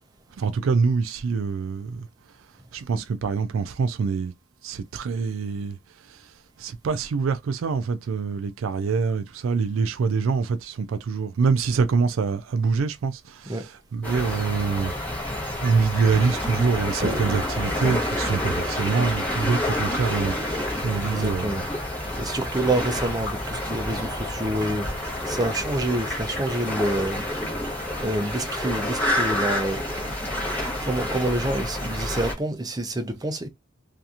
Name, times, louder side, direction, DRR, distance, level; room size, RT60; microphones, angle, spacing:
voice 1, 0.4-2.1 2.7-4.3 4.6-5.8 6.6-14.9 15.6-21.7, right 5 dB, 85° right, 0.4 m, -25 dB
sound 1, 14.0-32.3, left 1 dB, 10° left, 0.9 m, -29 dB
Toilet flush, 16.9-28.4, right 1 dB, 35° right, 1.1 m, -40 dB
voice 2, 21.0-21.6 22.2-27.2 28.0-30.2 30.8-33.5, right 1 dB, 20° right, 0.4 m, -27 dB
2.8 x 2.4 x 2.3 m
head